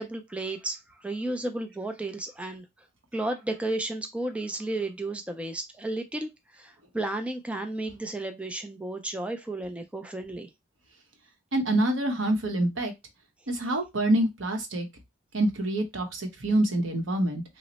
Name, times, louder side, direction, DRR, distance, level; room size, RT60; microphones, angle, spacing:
voice 1, 0.0-2.7 3.1-10.5, right 2 dB, 5° right, 6 dB, 0.3 m, -33 dB
voice 2, 11.5-12.9 13.5-14.9 15.3-17.4, right 1 dB, 85° right, 4 dB, 0.9 m, -26 dB
3.1 x 2.0 x 3.9 m, 0.20 s
head